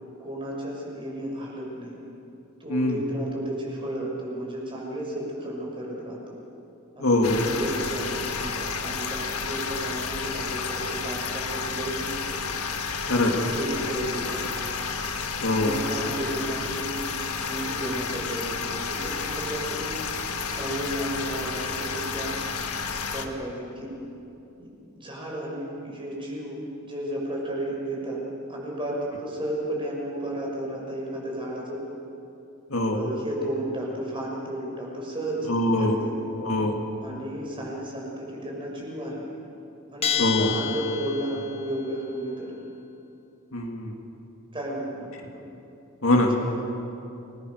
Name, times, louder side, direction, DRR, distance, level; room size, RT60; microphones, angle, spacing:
voice 1, 0.2-1.9 2.6-6.4 7.3-12.4 13.2-14.4 15.5-16.9 17.4-19.9 20.5-22.4 23.1-23.9 24.6-24.7 25.0-28.2 28.5-31.8 32.9-35.5 35.8-36.2 37.0-39.3 39.9-42.5 44.5-45.4 46.3-46.4, right 1 dB, 25° right, -3 dB, 6.6 m, -33 dB
voice 2, 7.0-7.4 13.1-13.3 15.4-15.8 32.7-33.0 35.5-36.0 36.4-36.8 40.2-40.5 43.5-43.9 46.0-46.3, left 1 dB, 65° left, 2 dB, 2.7 m, -23 dB
sound 1, 7.2-23.3, left 5 dB, 90° left, 1.7 m, -31 dB
Bell, 40.0-41.6, left 9 dB, 30° left, 1.4 m, -29 dB
29.0 x 21.0 x 6.7 m, 2.8 s
head